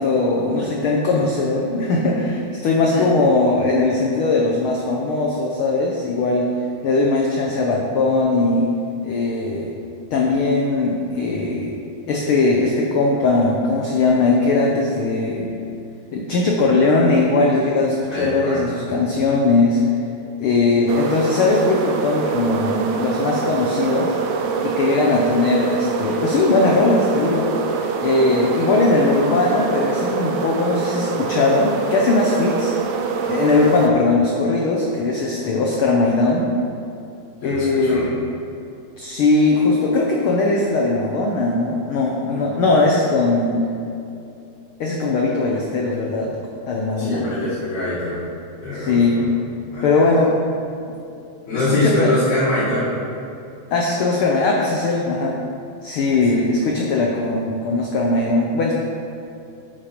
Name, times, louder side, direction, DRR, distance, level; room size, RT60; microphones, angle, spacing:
voice 1, 0.0-6.5 6.8-8.7 9.0-9.7 10.1-11.7 12.1-15.5 16.1-19.8 20.4-24.1 24.6-27.5 28.0-32.7 33.2-36.5 37.4-38.1 39.0-43.6 44.8-46.3 46.7-47.3 48.7-49.2 49.8-50.3 51.5-52.1 53.7-55.4 55.8-58.7, left 3 dB, 85° left, -1 dB, 1.1 m, -19 dB
voice 2, 18.1-18.7 37.4-38.1 42.3-42.6 47.0-48.2 48.6-49.2 49.7-50.1 51.5-53.0 56.1-56.4, left 2 dB, 70° left, -11 dB, 3.2 m, -24 dB
sound 1, 20.9-33.9, right 5 dB, 80° right, 2.0 m, -24 dB
9.0 x 5.9 x 5.1 m, 2.6 s
omnidirectional pair, 3.4 m